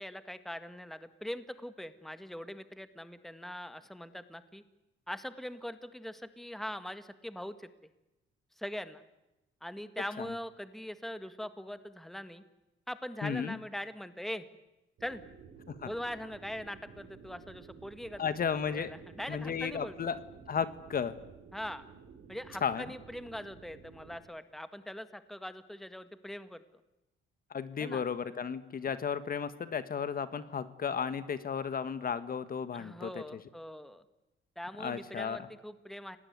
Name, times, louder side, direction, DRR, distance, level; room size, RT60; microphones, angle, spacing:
voice 1, 0.0-4.6 5.1-7.7 8.6-9.0 9.6-12.4 12.9-14.5 15.0-15.2 15.8-18.2 18.7-19.9 21.5-21.9 22.3-26.6 27.8-28.0 32.7-34.0 34.6-36.2, equal, ahead, 11 dB, 1.8 m, -42 dB
voice 2, 13.2-13.6 15.7-15.9 18.2-18.9 19.3-20.2 20.5-21.2 22.6-22.8 27.5-33.2 34.8-35.4, left 7 dB, 45° left, 13 dB, 1.6 m, -34 dB
sound 1, 15.0-24.2, right 6 dB, 70° right, 5.5 m, -53 dB
28.0 x 19.5 x 9.6 m, 0.97 s
cardioid pair, 105°, 21 cm